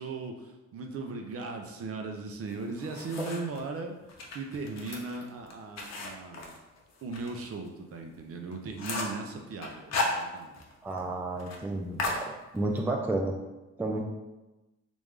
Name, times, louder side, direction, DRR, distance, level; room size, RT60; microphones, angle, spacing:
voice 1, 0.0-6.6 7.0-10.6, right 3 dB, 50° right, 4 dB, 0.6 m, -38 dB
sound 1, 2.5-3.6 4.1-7.3 7.7-7.8 8.1-8.2 8.5-9.2 9.6-10.7 11.0-11.1 11.4-11.6 12.0-12.8, left 3 dB, 60° left, 0.7 m, -35 dB
voice 2, 10.8-13.4 13.8-14.0, right 2 dB, 5° right, 2 dB, 0.3 m, -31 dB
3.2 x 2.6 x 3.5 m, 1.1 s
cardioid pair, 90°, 30 cm